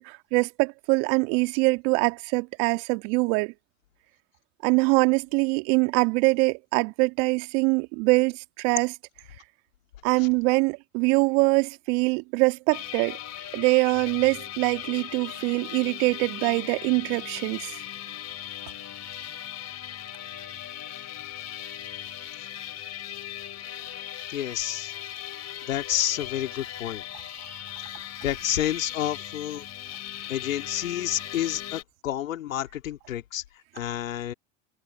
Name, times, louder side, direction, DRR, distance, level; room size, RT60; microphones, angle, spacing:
voice 1, 0.0-3.5 4.6-8.9 10.0-13.2 13.5-17.8, right 29 dB, 65° right, 2.0 m, -23 dB
sound 1, 12.7-31.8, left 11 dB, 40° left, 2.9 m, -38 dB
voice 2, 24.3-24.9 25.7-27.0 28.0-29.6 30.3-33.4 33.7-34.3, left 12 dB, 85° left, 2.5 m, -29 dB
hypercardioid pair, 75°, 39 cm